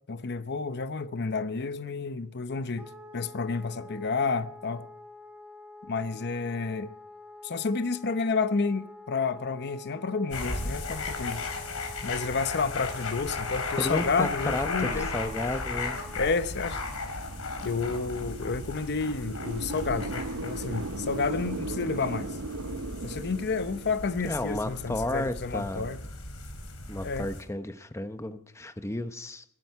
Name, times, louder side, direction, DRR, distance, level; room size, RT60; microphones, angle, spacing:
voice 1, 0.1-4.9 5.9-6.9 7.4-11.4 12.0-15.1 16.2-16.8 17.6-22.3 23.0-26.0 27.0-27.3, left 4 dB, 50° left, 0.8 m, -30 dB
Wind instrument woodwind instrument, 2.8-16.3, left 2 dB, 5° right, 1.7 m, -48 dB
sound 1, 10.3-27.4, left 3 dB, 80° left, 4.0 m, -36 dB
sound 2, 12.7-26.1, right 2 dB, 70° right, 0.8 m, -40 dB
voice 2, 13.8-16.0 24.2-25.9 26.9-29.4, left 1 dB, 15° left, 0.8 m, -32 dB
21.5 x 12.5 x 4.7 m
head